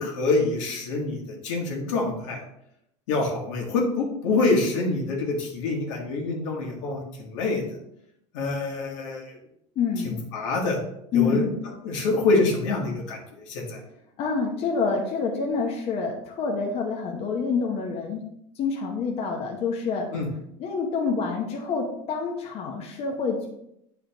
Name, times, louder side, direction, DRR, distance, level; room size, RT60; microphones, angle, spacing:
voice 1, 0.0-2.4 3.1-7.6 8.3-9.4 10.0-10.8 11.1-11.5 11.8-13.2 13.5-13.8 20.1-20.3, left 3 dB, 80° left, 0 dB, 1.9 m, -26 dB
voice 2, 9.8-10.2 11.1-11.5 14.2-18.2 18.6-20.1 20.6-23.5, left 5 dB, 40° left, 0 dB, 1.0 m, -27 dB
8.4 x 4.9 x 3.0 m, 0.77 s
supercardioid pair, 135°, 16 cm